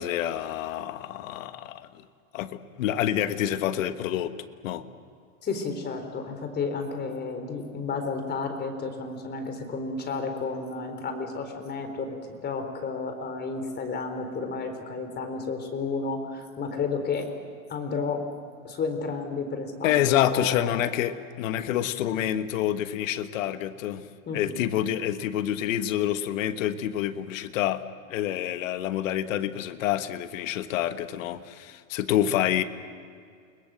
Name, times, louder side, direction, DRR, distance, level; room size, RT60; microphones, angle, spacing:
voice 1, 0.0-1.9 2.3-4.3 4.6-4.8 19.8-24.1 24.3-32.6, left 11 dB, 75° left, 10 dB, 1.4 m, -27 dB
voice 2, 5.4-12.2 12.4-17.3 17.7-18.2 18.6-20.9 24.3-24.6, left 4 dB, 25° left, 6 dB, 4.1 m, -32 dB
29.5 x 21.0 x 7.8 m, 2.2 s
supercardioid pair, 135°, 40 cm